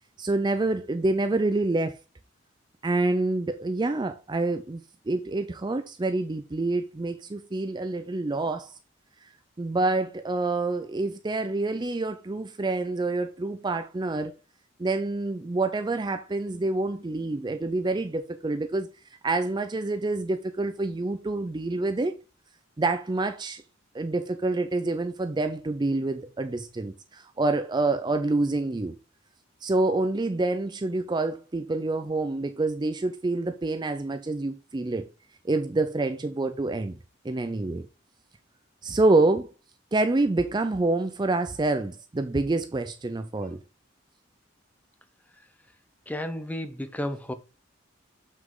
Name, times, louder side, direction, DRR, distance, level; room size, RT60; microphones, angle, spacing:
voice 1, 0.2-2.0 2.8-8.7 9.6-14.3 14.8-18.9 19.2-22.1 22.8-23.6 23.9-28.9 29.6-35.1 35.4-37.0 37.2-37.9 38.8-39.5 39.9-43.6, right 2 dB, 20° right, 0.4 m, -27 dB
voice 2, 46.1-47.3, left 1 dB, 10° left, 0.7 m, -32 dB
7.2 x 6.3 x 3.8 m
head